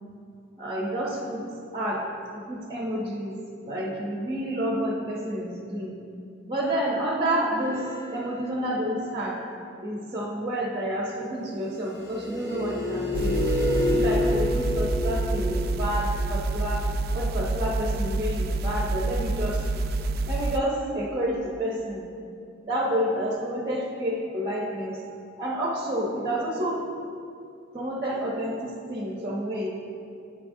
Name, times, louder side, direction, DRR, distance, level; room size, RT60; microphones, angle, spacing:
voice 1, 0.6-1.5 1.7-2.1 2.3-3.4 3.6-6.0 6.5-9.4 9.8-13.5 13.9-16.9 17.1-19.6 20.3-22.1 22.7-25.0 25.4-26.8 27.7-29.7, equal, 25° right, -2 dB, 0.7 m, -29 dB
sound 1, 7.6-8.6 11.9-15.6, left 1 dB, 15° left, 1.4 m, -28 dB
sound 2, 13.1-20.6, right 2 dB, 50° right, 0.3 m, -28 dB
8.7 x 7.4 x 2.7 m, 2.5 s
head